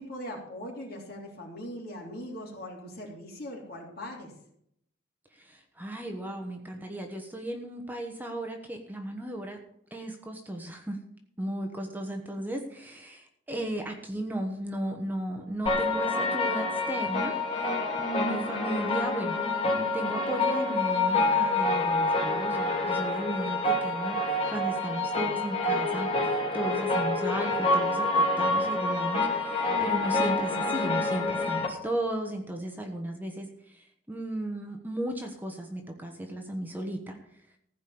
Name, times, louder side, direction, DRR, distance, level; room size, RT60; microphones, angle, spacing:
voice 1, 0.0-4.3, left 1 dB, 55° left, -1 dB, 3.5 m, -40 dB
voice 2, 5.3-9.6 9.9-11.0 11.4-19.4 19.6-37.2, right 1 dB, 10° right, 3 dB, 1.2 m, -35 dB
sound 1, 15.7-31.7, left 2 dB, 30° left, 3.0 m, -27 dB
15.0 x 5.2 x 8.7 m, 0.72 s
head